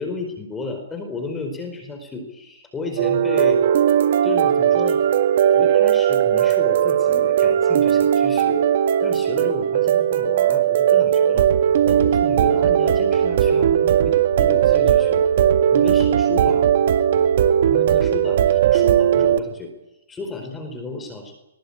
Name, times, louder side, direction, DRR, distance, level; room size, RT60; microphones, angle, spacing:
voice 1, 0.0-3.6 4.2-5.0 5.5-8.7 9.0-11.5 11.8-15.3 15.7-16.7 17.6-19.7 20.1-21.3, left 3 dB, 15° left, 6 dB, 4.5 m, -32 dB
sound 1, 3.0-19.4, right 9 dB, 55° right, 1.9 m, -18 dB
21.5 x 20.0 x 8.8 m, 0.98 s
hypercardioid pair, 140°, 0 cm